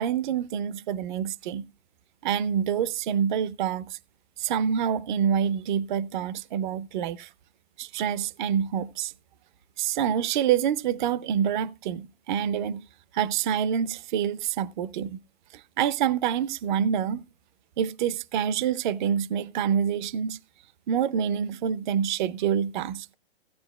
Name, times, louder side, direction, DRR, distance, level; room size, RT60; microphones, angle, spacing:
voice 1, 0.0-1.7 2.2-4.0 4.4-7.3 7.8-9.1 9.8-12.8 13.1-15.2 15.5-17.2 17.8-20.4 20.9-23.1, right 8 dB, 50° right, 0.6 m, -27 dB
16.5 x 9.5 x 2.2 m
hypercardioid pair, 145°, 31 cm